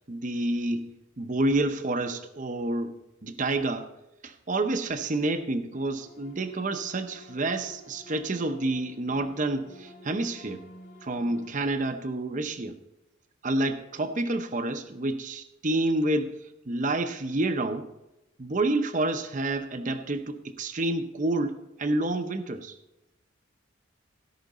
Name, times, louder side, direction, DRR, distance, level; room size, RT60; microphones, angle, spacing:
voice 1, 0.1-3.9 4.2-10.6 11.0-12.8 13.4-16.4 16.7-17.9 18.4-22.8, right 2 dB, 40° right, 7 dB, 0.7 m, -29 dB
sound 1, 5.7-11.5, left 1 dB, 45° left, 2.9 m, -51 dB
17.0 x 5.8 x 4.1 m, 0.91 s
head